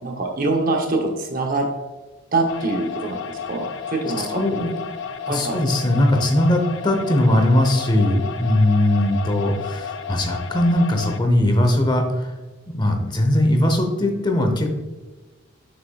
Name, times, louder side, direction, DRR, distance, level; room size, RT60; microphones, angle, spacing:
voice 1, 0.0-1.7 2.3-4.4 5.3-5.6, right 2 dB, 40° right, 1 dB, 0.8 m, -24 dB
sound 1, 2.5-11.2, left 6 dB, 60° left, 0.5 m, -32 dB
voice 2, 4.2-4.7 5.3-12.3 12.7-14.8, left 1 dB, 20° left, 3 dB, 0.8 m, -19 dB
6.6 x 6.5 x 2.3 m, 1.2 s
head